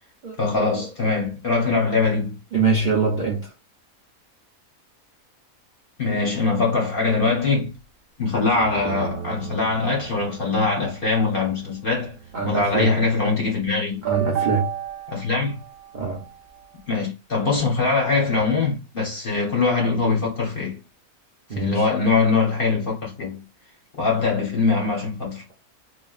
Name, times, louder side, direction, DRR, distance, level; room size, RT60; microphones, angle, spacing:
voice 1, 0.4-2.4 6.0-7.7 8.2-12.2 12.4-14.0 15.1-15.6 16.9-20.8 21.5-23.4 24.0-25.4, left 4 dB, 45° left, 0.9 m, -22 dB
voice 2, 2.5-3.5 12.3-13.0 14.1-14.7 15.9-16.2 21.5-21.9, right 4 dB, 55° right, 0.5 m, -23 dB
sound 1, 8.5-13.4 14.0-16.6, right 9 dB, 85° right, 1.1 m, -33 dB
3.1 x 2.2 x 2.3 m
omnidirectional pair, 1.6 m